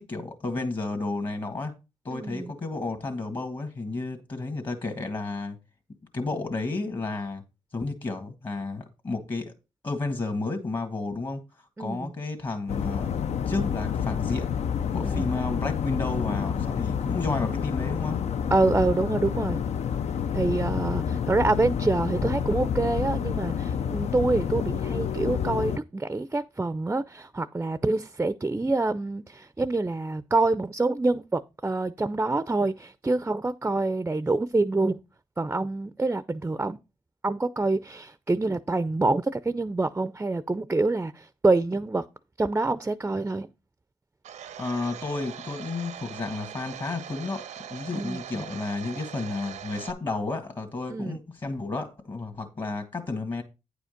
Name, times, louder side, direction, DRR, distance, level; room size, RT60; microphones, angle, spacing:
voice 1, 0.0-1.7 2.0-5.6 6.1-7.4 7.7-9.5 9.8-13.1 13.5-14.5 14.9-18.2 44.6-53.4, left 3 dB, 40° left, 1.8 m, -32 dB
voice 2, 2.1-2.5 11.8-12.1 15.0-15.2 18.5-19.6 20.3-35.0 35.4-36.8 37.2-42.0 42.4-43.5 47.9-48.2 50.9-51.2, right 2 dB, 15° right, 0.5 m, -26 dB
sound 1, 12.7-25.8, left 8 dB, 65° left, 0.5 m, -29 dB
Domestic sounds home sounds, 44.2-49.9, right 9 dB, 90° right, 0.8 m, -41 dB
9.1 x 5.1 x 5.1 m
cardioid pair, 70°, 12 cm